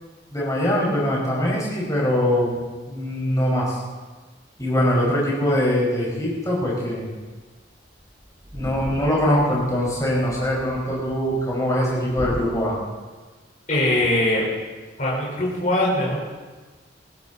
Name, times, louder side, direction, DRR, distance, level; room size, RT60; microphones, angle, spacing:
voice 1, 0.3-2.6 2.9-3.8 4.6-7.1 8.5-12.8, equal, 20° left, -4 dB, 5.6 m, -22 dB
sound 1, 7.4-7.5 7.7-7.8 8.0-12.5, equal, 20° right, 1.9 m, -38 dB
voice 2, 13.7-14.4 15.0-16.2, left 1 dB, 45° left, -4 dB, 4.8 m, -21 dB
19.5 x 16.0 x 4.2 m, 1.3 s
head